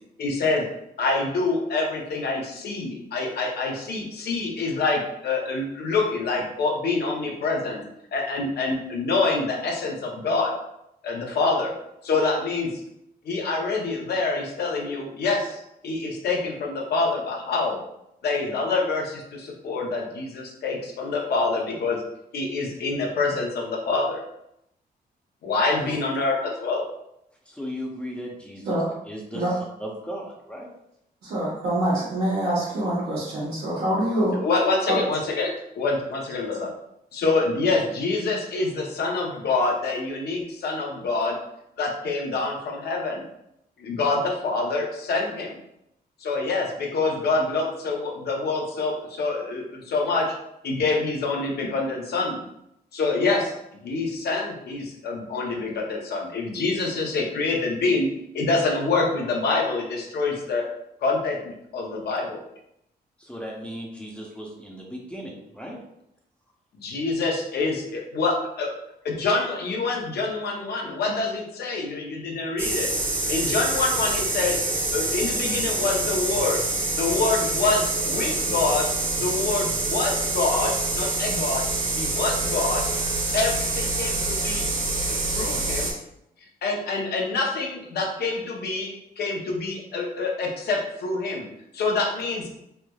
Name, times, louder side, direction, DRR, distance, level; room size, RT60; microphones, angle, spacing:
voice 1, 0.2-0.7 1.0-7.8 8.1-10.5 11.0-11.7 12.0-12.7 13.2-17.8 18.2-22.0 22.3-24.2 25.4-26.8 34.4-36.7 37.1-41.4 41.8-43.2 43.8-45.6 46.2-50.3 50.6-52.4 52.9-53.5 53.8-58.1 58.3-60.6 61.0-62.4 66.8-68.7 69.0-72.9 73.3-74.6 74.9-76.6 77.0-78.8 79.1-81.6 82.0-82.8 83.3-84.6 85.1-85.9 86.6-91.5 91.7-92.5, left 3 dB, 80° left, 0 dB, 0.7 m, -26 dB
voice 2, 27.5-28.8 29.1-30.7 63.2-65.8, equal, 5° left, -2 dB, 0.6 m, -36 dB
voice 3, 31.2-34.4 34.9-35.0, right 1 dB, 80° right, -10 dB, 1.1 m, -25 dB
sound 1, 72.6-85.9, right 3 dB, 35° right, 0.9 m, -26 dB
3.3 x 2.9 x 2.3 m, 0.81 s
cardioid pair, 105°, 16 cm